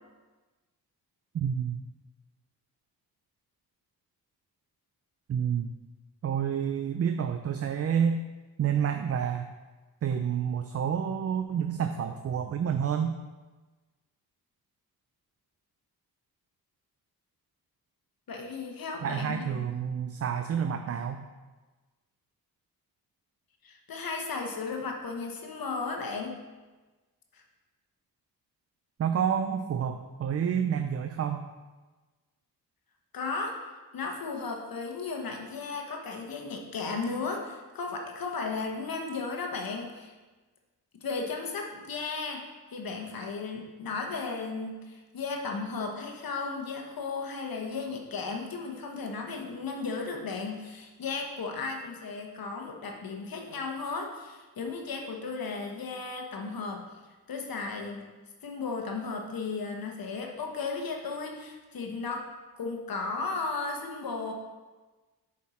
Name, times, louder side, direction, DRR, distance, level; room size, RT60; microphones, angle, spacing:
voice 1, 1.3-1.8 5.3-5.7 6.2-8.2 8.6-9.5 10.0-13.1 19.0-21.3 29.0-31.5, right 8 dB, 40° right, 7 dB, 0.4 m, -29 dB
voice 2, 18.3-19.7 23.6-26.4 27.3-27.4 33.1-33.6 33.9-40.1 40.9-42.4 42.7-56.9 57.3-58.1 58.4-62.3 62.6-64.3, left 4 dB, 65° left, 2 dB, 1.2 m, -35 dB
6.9 x 4.4 x 4.3 m, 1.3 s
cardioid pair, 65°, 37 cm